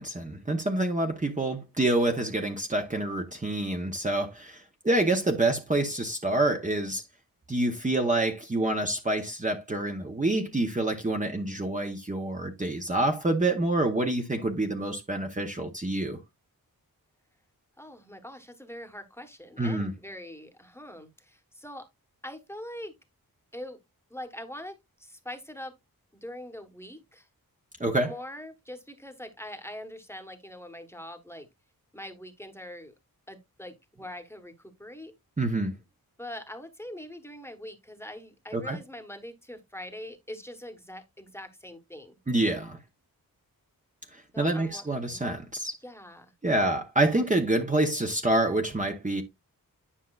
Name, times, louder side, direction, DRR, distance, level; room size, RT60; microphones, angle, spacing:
voice 1, 0.0-7.0 7.5-16.2 19.6-19.9 27.8-28.1 35.4-35.7 38.5-38.8 42.3-42.8 44.1-45.7 46.4-49.2, right 2 dB, 20° right, 1.0 m, -27 dB
voice 2, 17.8-21.8 22.2-22.9 23.5-23.8 24.1-25.7 26.2-27.3 28.0-31.5 31.9-32.9 33.3-35.1 36.2-42.2 44.3-44.9 45.8-46.3, left 1 dB, 5° left, 1.2 m, -43 dB
10.0 x 5.4 x 2.4 m
wide cardioid pair, 90°, 36 cm